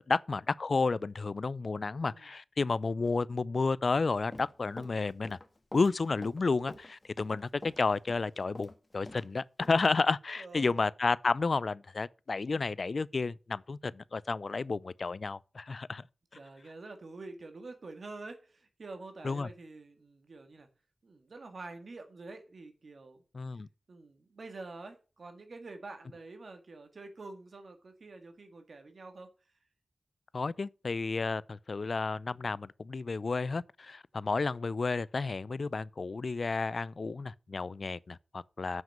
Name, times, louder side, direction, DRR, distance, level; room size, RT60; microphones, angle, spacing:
voice 1, 0.1-5.4 5.7-16.0 19.2-19.5 23.3-23.7 30.3-38.8, left 4 dB, 65° left, 0.4 m, -31 dB
Run, 4.1-9.3 9.6-9.8, left 1 dB, 30° left, 1.7 m, -47 dB
voice 2, 10.4-10.8 16.4-20.7 21.0-23.2 23.9-29.3, right 3 dB, 70° right, 1.8 m, -47 dB
7.4 x 6.1 x 7.1 m
cardioid pair, 55°, 0 cm